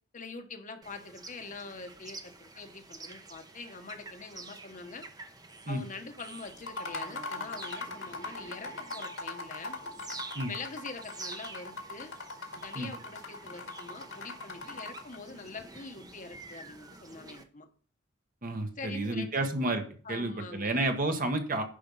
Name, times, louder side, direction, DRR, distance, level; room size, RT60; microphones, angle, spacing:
voice 1, 0.1-5.1 5.7-9.8 10.5-12.1 12.5-17.7 18.8-19.5 20.0-20.8, left 3 dB, 40° left, 6 dB, 1.1 m, -44 dB
sound 1, 0.8-17.4, right 3 dB, 20° right, 0.8 m, -48 dB
sound 2, 6.6-15.2, left 3 dB, 75° left, 2.0 m, -40 dB
voice 2, 18.4-19.8 20.1-21.6, right 2 dB, 45° right, 5 dB, 1.3 m, -30 dB
10.0 x 5.2 x 5.4 m, 0.43 s
head